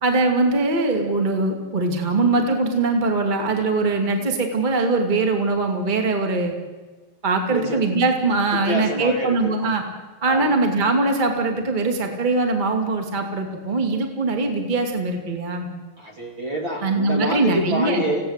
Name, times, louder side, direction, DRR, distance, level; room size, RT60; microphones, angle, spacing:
voice 1, 0.0-6.5 7.2-9.8 10.2-15.7 16.8-18.0, right 3 dB, 15° right, 4 dB, 2.0 m, -21 dB
voice 2, 7.5-7.8 8.5-9.6 10.3-10.5 16.0-18.3, equal, 35° right, 1 dB, 2.4 m, -28 dB
27.5 x 17.0 x 8.2 m, 1.3 s
omnidirectional pair, 4.3 m